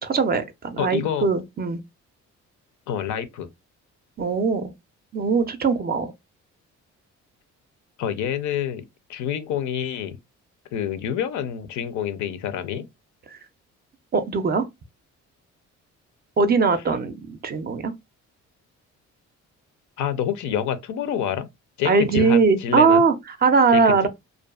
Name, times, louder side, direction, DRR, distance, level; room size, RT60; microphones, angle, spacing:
voice 1, 0.0-1.8 4.2-4.7 5.1-6.1 13.3-13.4 14.1-14.7 16.4-17.9 21.8-23.1 23.4-24.1, right 4 dB, 35° right, 0.4 m, -20 dB
voice 2, 0.8-1.3 2.9-3.5 8.0-8.8 9.1-10.2 10.7-12.9 20.0-21.5 21.8-23.1 23.7-24.1, left 9 dB, 75° left, 0.5 m, -27 dB
2.5 x 2.3 x 2.3 m
cardioid pair, 90°, 30 cm